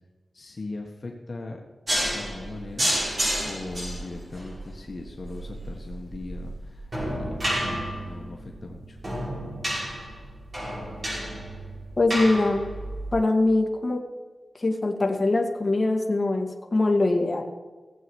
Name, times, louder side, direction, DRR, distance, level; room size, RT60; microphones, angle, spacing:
voice 1, 0.3-1.6 2.0-2.9 3.4-9.0, left 2 dB, 45° left, 0 dB, 1.5 m, -39 dB
sound 1, 1.9-13.1, equal, 35° right, 5.4 m, -31 dB
voice 2, 12.0-12.6 13.1-14.0 14.6-17.4, left 2 dB, 25° left, 1 dB, 1.9 m, -23 dB
17.0 x 8.0 x 6.3 m, 1.3 s
wide cardioid pair, 135°, 0 cm